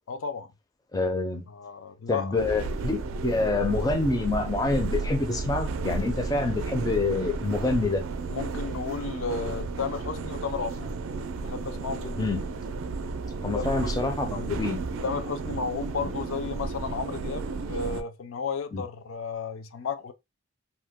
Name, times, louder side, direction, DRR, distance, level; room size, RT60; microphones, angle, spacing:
voice 1, 0.1-0.5 1.5-2.4 8.3-10.9 11.4-12.2 13.3-13.9 14.3-14.5 15.0-20.1, left 5 dB, 80° left, 0.4 m, -33 dB
voice 2, 0.9-1.5 2.1-8.0 12.2-12.4 13.4-14.8 16.0-16.1 18.7-18.8, left 3 dB, 20° left, 0.4 m, -27 dB
sound 1, 2.4-18.0, right 3 dB, 80° right, 0.4 m, -33 dB
2.7 x 2.0 x 3.5 m
head